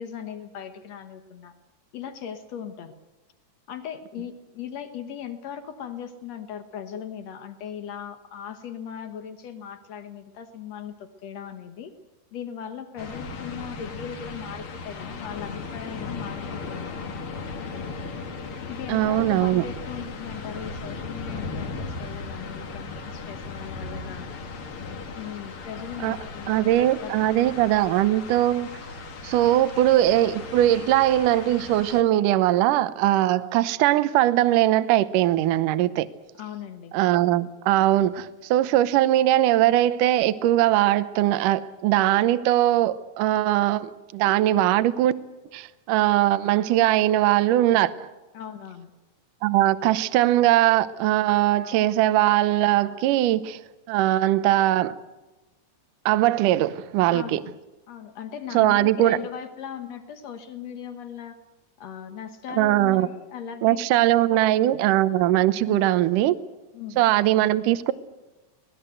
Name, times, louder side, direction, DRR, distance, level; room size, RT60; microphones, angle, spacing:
voice 1, 0.0-1.5 1.9-2.9 3.7-11.9 12.3-17.0 18.7-24.4 25.1-27.6 36.3-36.9 48.3-48.9 57.1-57.6 57.9-61.4 61.8-64.7 65.6-65.9 66.7-67.1, left 8 dB, 70° left, 1.6 m, -38 dB
sound 1, 13.0-32.0, left 4 dB, 55° left, 1.5 m, -37 dB
voice 2, 18.9-19.6 26.0-26.2 26.5-28.7 29.2-36.1 36.9-45.1 45.5-48.1 49.4-53.6 53.9-55.0 56.0-57.4 58.5-59.2 62.6-63.1 63.6-66.4 67.0-67.9, right 14 dB, 85° right, 1.8 m, -21 dB
25.5 x 19.0 x 7.9 m
omnidirectional pair, 5.0 m